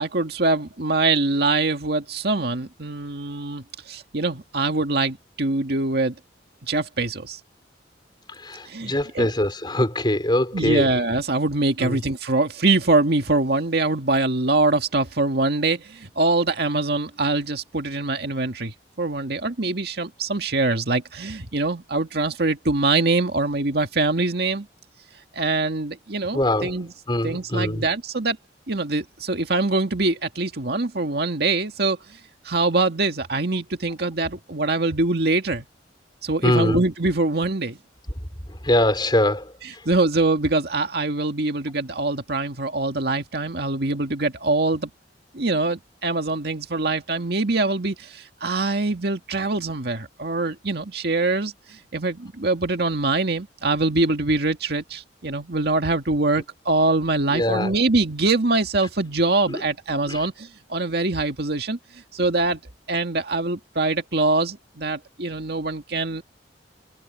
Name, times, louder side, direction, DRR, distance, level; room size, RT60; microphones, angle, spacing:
voice 1, 0.0-6.1 6.6-7.4 8.7-9.3 10.5-24.7 25.3-26.9 27.2-28.4 28.7-32.0 32.5-35.7 36.2-37.8 39.9-44.9 45.3-51.5 51.9-61.8 62.1-62.6 62.9-66.2, right 3 dB, 60° right, 2.0 m, -23 dB
voice 2, 8.4-10.9 11.8-12.0 26.3-26.7 27.1-27.8 36.4-36.8 38.6-39.5 57.3-57.7 59.5-59.6 60.1-60.2, left 1 dB, 25° left, 4.5 m, -22 dB
head